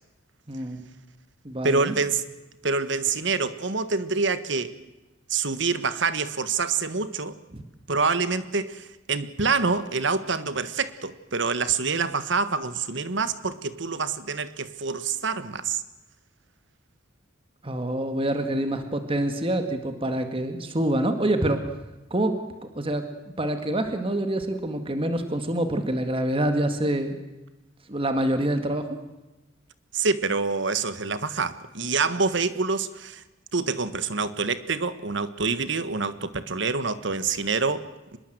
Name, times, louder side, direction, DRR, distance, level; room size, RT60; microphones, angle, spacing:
voice 1, 0.5-0.9 1.4-1.9 7.5-7.6 17.6-21.6 22.1-22.4 22.8-23.1 23.4-27.2 27.9-29.0, right 1 dB, 30° right, 7 dB, 1.9 m, -26 dB
voice 2, 1.6-2.2 2.6-4.7 5.3-7.4 7.9-15.8 29.9-33.2 33.5-38.2, right 4 dB, 65° right, 13 dB, 1.5 m, -26 dB
25.5 x 21.5 x 8.0 m, 1.1 s
head